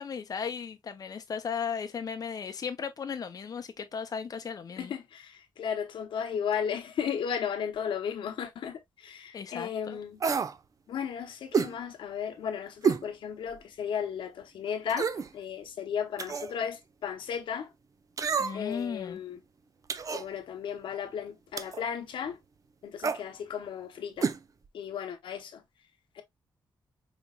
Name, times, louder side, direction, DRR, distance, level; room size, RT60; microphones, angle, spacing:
voice 1, 0.0-4.9 9.3-10.0 18.4-19.2, left 6 dB, 50° left, 0.6 m, -36 dB
voice 2, 4.8-10.2 10.9-17.7 18.5-19.4 20.1-22.4 22.8-24.3 24.7-25.6 26.1-26.2, left 7 dB, 90° left, 0.9 m, -35 dB
sound 1, 10.2-10.6 11.5-11.8 12.8-13.1 13.6-13.7 14.9-15.3 16.2-16.5 18.2-18.7 19.9-20.3 21.6-21.8 23.0-23.2 24.2-24.4 24.7-24.8, right 6 dB, 45° right, 0.5 m, -28 dB
5.1 x 2.9 x 2.2 m
cardioid pair, 100°, 8 cm